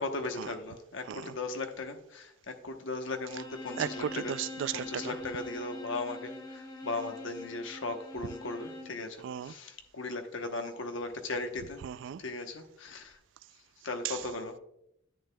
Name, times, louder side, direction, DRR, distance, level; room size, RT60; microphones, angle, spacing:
voice 1, 0.0-4.3 4.7-11.8 12.2-13.2 13.8-14.6, left 3 dB, 70° left, 1.0 m, -37 dB
Bowed string instrument, 3.2-9.0, left 2 dB, 20° left, 1.0 m, -44 dB
voice 2, 3.8-5.1 9.2-9.5 11.8-12.2 14.0-14.2, right 9 dB, 65° right, 0.3 m, -35 dB
10.0 x 8.8 x 2.2 m
head